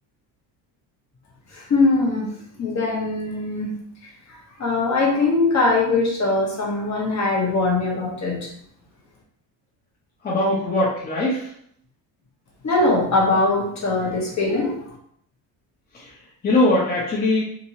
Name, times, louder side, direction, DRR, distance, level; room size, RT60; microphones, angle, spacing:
voice 1, 1.5-2.3 2.6-3.8 4.3-8.5 12.6-14.9, left 3 dB, 35° left, -2 dB, 1.1 m, -21 dB
voice 2, 10.2-11.5 15.9-16.1 16.4-17.4, left 2 dB, 20° left, -7 dB, 0.8 m, -21 dB
2.9 x 2.7 x 2.8 m, 0.67 s
cardioid pair, 105°, 47 cm